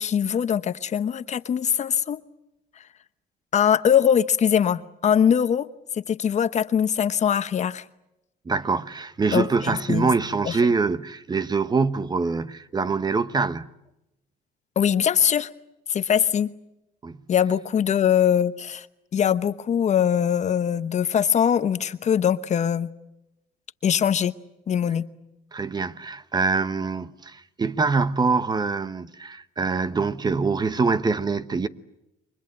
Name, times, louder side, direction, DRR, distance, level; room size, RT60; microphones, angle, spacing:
voice 1, 0.0-2.2 3.5-5.7 5.9-7.8 9.3-10.1 10.4-10.6 14.8-15.5 15.9-16.5 17.3-18.9 19.1-22.9 23.8-24.3 24.7-25.0, left 8 dB, 45° left, 1.0 m, -22 dB
voice 2, 8.4-13.7 17.0-17.2 25.5-31.7, right 4 dB, 25° right, 1.0 m, -24 dB
29.5 x 24.0 x 7.8 m
cardioid pair, 110°, 17 cm